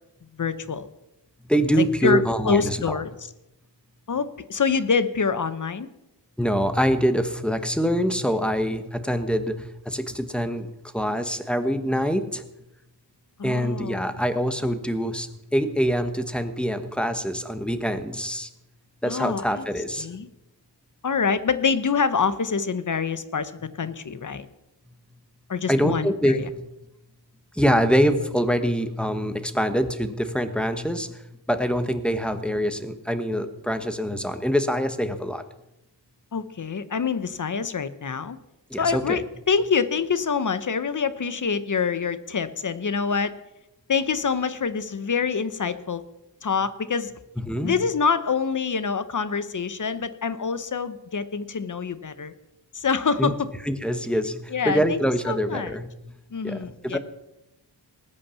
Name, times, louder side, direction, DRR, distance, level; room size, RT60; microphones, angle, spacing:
voice 1, 0.4-0.9 1.8-3.3 4.1-5.9 13.4-14.0 19.0-19.6 20.0-20.3 21.0-23.5 23.8-24.5 25.5-26.5 36.3-38.4 38.8-43.3 43.9-46.0 46.4-47.1 47.6-52.3 52.7-53.5 54.5-55.0 55.3-55.8 56.3-57.0, left 5 dB, 45° left, 13 dB, 1.0 m, -26 dB
voice 2, 1.5-2.8 6.4-10.7 10.9-12.4 13.4-18.5 19.0-20.1 25.7-26.6 27.6-31.1 31.5-35.4 38.7-39.2 47.4-47.7 53.2-53.3 53.7-55.9 56.4-57.0, equal, ahead, 9 dB, 1.2 m, -24 dB
19.5 x 8.7 x 7.0 m, 0.90 s
wide cardioid pair, 145°, 43 cm